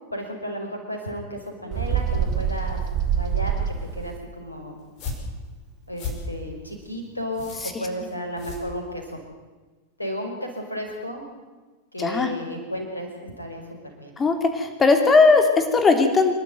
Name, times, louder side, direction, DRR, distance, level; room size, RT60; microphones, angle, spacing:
voice 1, 0.1-2.8 3.1-3.6 3.9-4.8 5.9-7.5 7.8-9.2 10.0-11.2 11.9-13.6 13.9-14.1, equal, 80° left, 2 dB, 5.5 m, -33 dB
Bird, 1.7-4.2, right 8 dB, 35° right, 2.6 m, -25 dB
sound 1, 4.8-9.3, left 3 dB, 40° left, 5.7 m, -36 dB
voice 2, 12.0-12.3 14.2-16.3, left 4 dB, 20° left, 6 dB, 3.3 m, -18 dB
27.5 x 12.0 x 9.4 m, 1.3 s
figure-of-eight pair, 90°, 0 cm